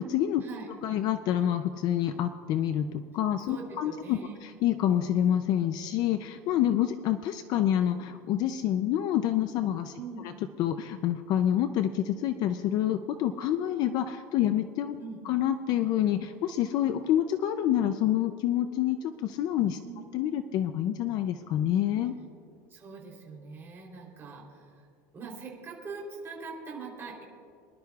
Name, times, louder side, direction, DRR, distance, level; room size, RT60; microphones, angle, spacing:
voice 1, 0.0-0.4 0.8-9.9 10.2-10.3 10.6-15.0 15.2-19.8 20.1-22.1, left 11 dB, 50° left, 9 dB, 0.5 m, -27 dB
voice 2, 3.5-4.4 9.9-10.3 15.0-15.2 19.8-20.0 22.7-24.9 25.1-27.2, right 4 dB, 25° right, -3 dB, 3.4 m, -42 dB
24.0 x 11.5 x 2.4 m, 2.5 s
cardioid pair, 150°, 9 cm